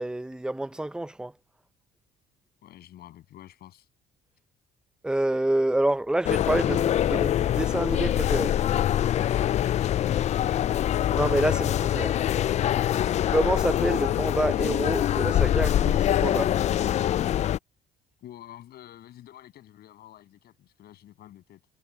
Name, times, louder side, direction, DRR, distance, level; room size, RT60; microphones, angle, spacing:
voice 1, 0.0-1.3 5.0-8.6 11.1-12.1 13.3-16.5, right 1 dB, 5° right, 0.7 m, -27 dB
voice 2, 2.6-3.9 9.1-10.8 12.8-13.2 18.2-21.6, left 12 dB, 70° left, 7.7 m, -47 dB
sound 1, 6.2-17.6, left 11 dB, 40° left, 0.4 m, -24 dB
cardioid pair, 110°, 17 cm